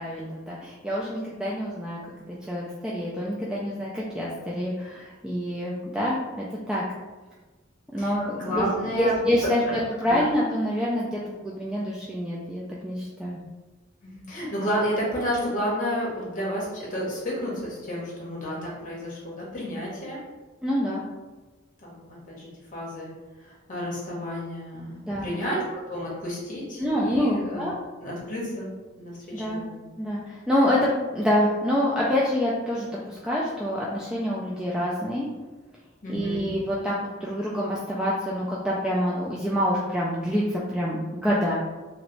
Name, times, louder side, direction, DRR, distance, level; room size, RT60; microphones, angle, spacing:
voice 1, 0.0-2.0 2.3-6.8 7.9-8.7 8.9-13.4 20.6-21.0 25.0-25.3 26.8-27.7 29.3-29.6 30.0-35.3 36.1-41.6, equal, 5° right, -6 dB, 0.3 m, -26 dB
voice 2, 8.4-9.2 9.7-9.8 10.0-10.3 14.0-20.2 21.8-23.1 23.4-25.6 25.9-27.7 28.0-29.8 36.0-36.6, equal, 40° left, -5 dB, 0.8 m, -31 dB
3.1 x 2.9 x 2.5 m, 1.2 s
head